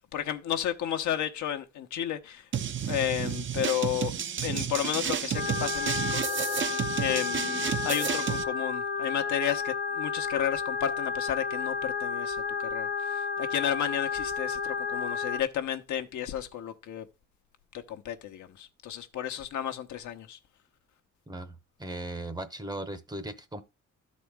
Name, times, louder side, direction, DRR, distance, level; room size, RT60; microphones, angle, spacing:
voice 1, 0.1-2.5 2.9-4.1 4.4-6.4 7.0-17.1 17.9-20.4, left 10 dB, 75° left, 0.9 m, -32 dB
sound 1, 2.5-8.4, right 8 dB, 40° right, 0.6 m, -31 dB
sound 2, 5.3-15.4, left 5 dB, 40° left, 0.9 m, -32 dB
voice 2, 21.3-23.6, right 1 dB, 15° right, 0.8 m, -38 dB
12.5 x 4.2 x 3.4 m
cardioid pair, 90°, 30 cm